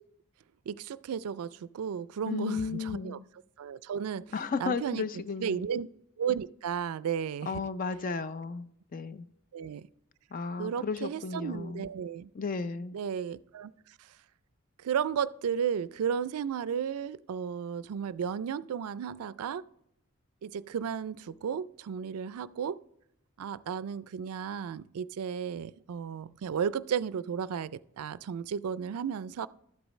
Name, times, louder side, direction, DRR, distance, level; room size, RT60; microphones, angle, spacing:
voice 1, 0.7-3.2 3.6-5.0 5.4-5.9 6.2-7.6 9.5-9.9 10.6-12.3 12.9-13.7 14.8-19.6 20.4-22.8 23.4-29.5, right 7 dB, 85° right, 0.4 m, -34 dB
voice 2, 2.3-3.2 4.3-5.6 7.5-9.3 10.3-11.9 12.3-13.0, left 5 dB, 40° left, 0.4 m, -34 dB
12.5 x 8.1 x 3.1 m
head